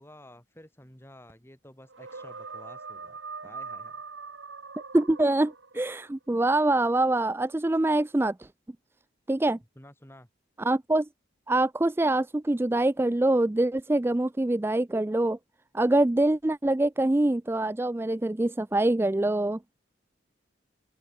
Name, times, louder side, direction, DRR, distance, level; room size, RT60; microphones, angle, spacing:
voice 1, 0.0-4.0 9.8-10.3, left 1 dB, 10° left, 2.6 m, -51 dB
sound 1, 1.9-6.0, right 4 dB, 80° right, 2.1 m, -42 dB
voice 2, 4.9-8.5 9.3-9.6 10.6-11.1 11.5-15.4 15.7-19.6, right 2 dB, 10° right, 0.3 m, -24 dB
open air
head